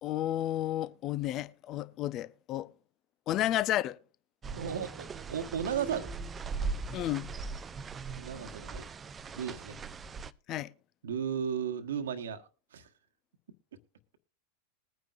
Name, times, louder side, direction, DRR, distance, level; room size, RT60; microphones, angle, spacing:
voice 1, 0.0-2.7 3.3-4.0 6.9-7.3 10.5-10.7, left 13 dB, 35° left, 0.6 m, -32 dB
sound 1, 4.4-10.3, right 4 dB, 20° right, 0.6 m, -39 dB
voice 2, 4.5-6.1 8.1-8.9 9.3-9.8 11.0-12.9, right 8 dB, 65° right, 1.3 m, -35 dB
21.0 x 9.3 x 2.5 m
figure-of-eight pair, 90°, 0 cm